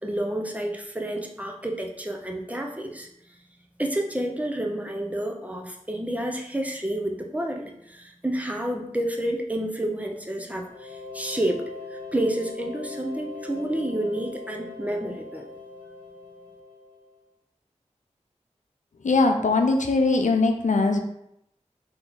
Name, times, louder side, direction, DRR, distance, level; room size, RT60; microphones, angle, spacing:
voice 1, 0.0-3.1 3.8-15.5, right 1 dB, 10° right, 2 dB, 0.7 m, -30 dB
sound 1, 10.6-17.2, left 3 dB, 60° left, 1.2 m, -40 dB
voice 2, 19.0-21.0, left 3 dB, 80° left, 5 dB, 0.5 m, -21 dB
3.6 x 2.9 x 4.0 m, 0.76 s
wide cardioid pair, 45°, 13 cm